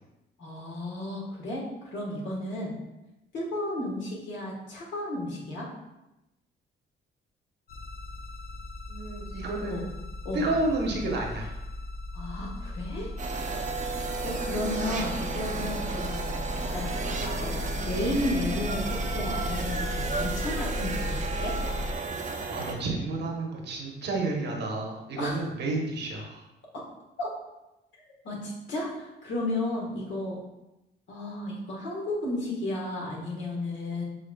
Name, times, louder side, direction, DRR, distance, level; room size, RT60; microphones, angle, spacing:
voice 1, 0.4-2.7 3.3-5.7 9.6-9.8 10.2-10.5 12.1-13.1 14.2-16.1 16.7-21.5 25.2-25.4 26.7-26.8 27.2-27.3 28.2-30.4 31.1-34.0, left 1 dB, 70° left, -3 dB, 1.5 m, -33 dB
sound 1, 7.7-22.0, left 1 dB, 50° left, 0.5 m, -36 dB
voice 2, 8.9-9.9 10.3-11.5 22.5-26.4, right 2 dB, 60° right, 0 dB, 1.0 m, -30 dB
sound 2, 13.2-22.7, right 4 dB, 40° right, 0.7 m, -33 dB
6.5 x 3.1 x 2.3 m, 0.94 s
cardioid pair, 90°, 20 cm